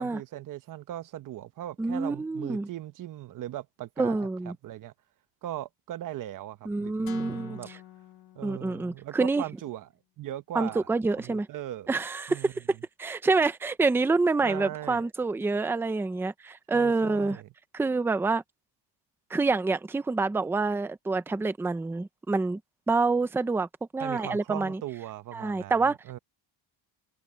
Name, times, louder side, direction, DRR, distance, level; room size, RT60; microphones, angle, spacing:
voice 1, 0.0-4.2 4.4-4.9 5.4-7.7 8.3-9.9 10.2-11.9 12.3-12.5 14.4-15.0 16.7-17.5 24.0-26.2, right 13 dB, 40° right, 1.0 m, -39 dB
voice 2, 1.8-2.7 4.0-4.5 6.7-7.6 8.4-9.4 10.5-11.5 11.9-12.6 13.0-17.4 17.7-18.4 19.3-22.6 22.9-23.7 23.9-24.8 25.3-26.0, right 3 dB, 5° right, 0.6 m, -27 dB
sound 1, 7.1-9.2, left 13 dB, 50° left, 1.3 m, -47 dB
cardioid pair, 160°, 47 cm